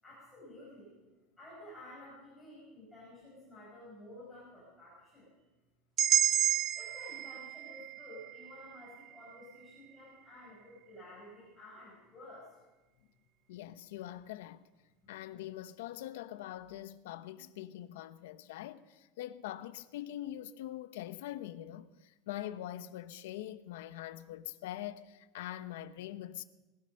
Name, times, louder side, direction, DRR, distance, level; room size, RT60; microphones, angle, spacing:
voice 1, 0.0-1.0 1.4-5.3 6.8-12.6 15.0-15.1, left 1 dB, 5° left, 5.3 m, -52 dB
sound 1, 6.0-10.0, right 10 dB, 25° right, 0.4 m, -32 dB
voice 2, 13.5-14.6 15.1-26.4, left 13 dB, 80° left, 0.9 m, -43 dB
20.0 x 11.0 x 6.5 m
supercardioid pair, 180°, 0 cm